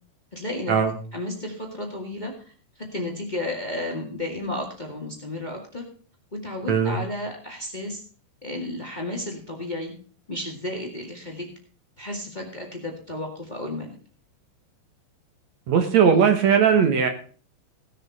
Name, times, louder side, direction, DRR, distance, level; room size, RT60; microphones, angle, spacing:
voice 1, 0.3-0.7 1.1-2.3 2.7-5.8 6.4-8.0 8.4-9.9 10.3-11.5 12.0-13.9, left 1 dB, 35° left, 2 dB, 0.7 m, -32 dB
voice 2, 6.7-7.0 15.7-17.1, right 7 dB, 65° right, 7 dB, 1.7 m, -18 dB
18.0 x 6.9 x 4.8 m, 0.41 s
omnidirectional pair, 5.0 m